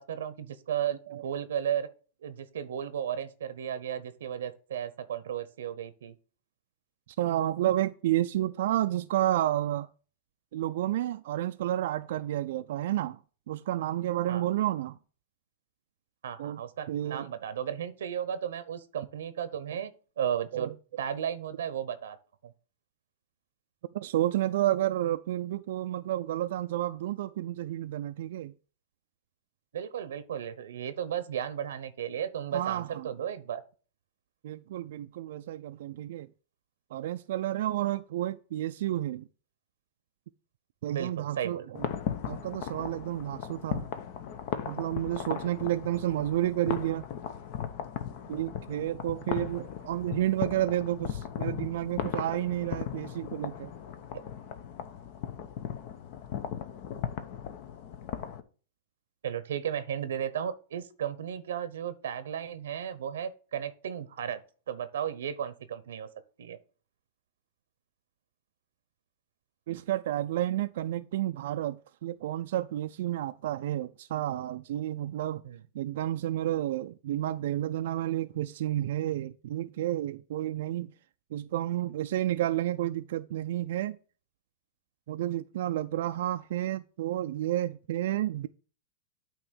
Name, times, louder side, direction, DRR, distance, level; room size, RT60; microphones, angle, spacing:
voice 1, 0.0-1.9 2.2-6.1 14.3-14.5 16.2-22.2 29.7-33.6 40.9-41.7 54.1-54.3 59.2-64.4 64.7-66.1 66.4-66.6 75.4-75.6, right 9 dB, 85° right, 0.7 m, -34 dB
voice 2, 7.2-9.9 10.5-13.2 13.5-15.0 16.4-16.6 16.9-17.3 20.5-20.7 23.9-28.5 32.5-33.1 34.4-36.3 36.9-39.3 40.8-41.9 42.3-43.9 44.7-47.1 48.3-53.7 69.7-75.4 75.7-80.9 81.3-84.0 85.1-88.5, right 13 dB, 70° right, 0.3 m, -31 dB
sound 1, 41.8-58.4, left 9 dB, 55° left, 0.8 m, -37 dB
8.8 x 3.0 x 6.2 m
supercardioid pair, 135°, 0 cm